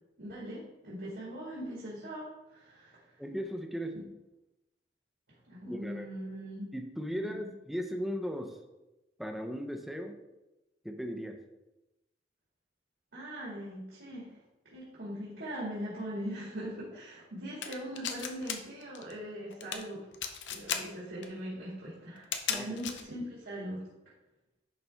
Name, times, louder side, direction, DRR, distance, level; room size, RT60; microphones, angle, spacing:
voice 1, 0.2-3.1 5.5-6.7 7.2-7.4 13.1-14.4 14.6-20.1 20.5-23.8, equal, 70° right, -7 dB, 2.2 m, -41 dB
voice 2, 3.2-4.0 5.7-6.1 6.7-8.6 9.2-10.2 10.8-11.4 22.5-22.6, equal, ahead, 3 dB, 0.6 m, -37 dB
sound 1, 17.6-18.6 18.8-19.1 19.5-19.8 20.1-20.8 21.2-21.3 22.2-23.0, left 8 dB, 85° left, 0.7 m, -34 dB
10.5 x 4.2 x 3.5 m, 0.99 s
head